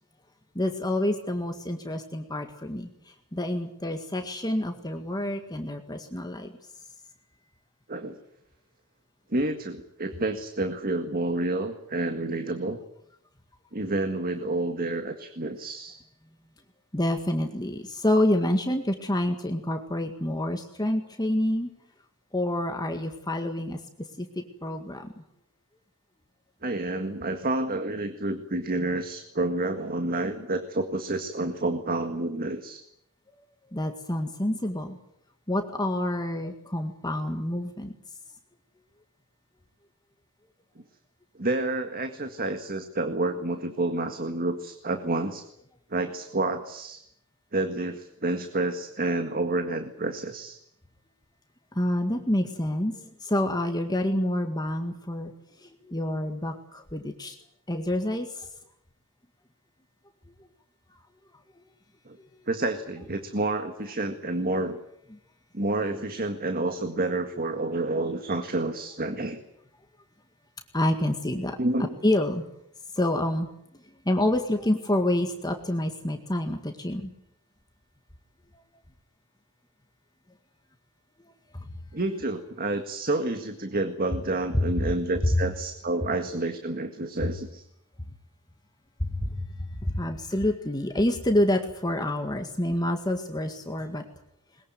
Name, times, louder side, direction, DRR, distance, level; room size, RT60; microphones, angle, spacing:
voice 1, 0.6-6.5 16.9-21.7 22.3-23.8 24.2-25.2 33.7-35.0 35.5-37.9 51.7-55.3 55.6-57.4 57.7-58.5 62.2-62.3 65.1-65.2 70.7-71.6 72.0-72.4 72.9-73.5 74.1-77.1 81.5-81.7 84.5-84.9 85.2-85.4 87.2-87.3 89.0-94.0, left 1 dB, 20° left, 5 dB, 1.9 m, -28 dB
voice 2, 9.3-12.8 13.7-16.0 26.6-32.8 41.4-45.4 45.9-47.0 47.5-50.6 62.1-62.2 62.5-64.8 65.5-69.4 71.6-71.9 81.9-87.7, right 2 dB, 40° right, 7 dB, 1.8 m, -29 dB
21.5 x 21.0 x 9.4 m, 0.75 s
head